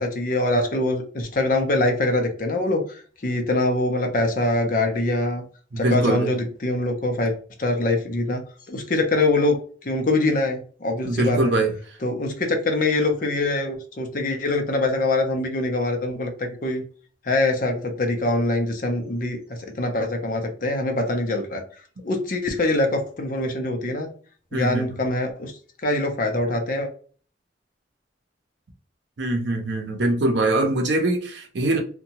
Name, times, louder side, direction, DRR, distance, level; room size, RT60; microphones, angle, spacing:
voice 1, 0.0-5.4 5.8-7.3 7.6-8.4 8.7-11.5 12.0-16.8 17.2-21.6 22.0-24.1 24.5-25.5 25.8-26.9, left 2 dB, 45° left, 0.6 m, -24 dB
voice 2, 5.7-6.3 11.0-11.7 24.5-25.0 29.2-31.8, right 2 dB, 75° right, 0.6 m, -23 dB
2.7 x 2.2 x 2.8 m
head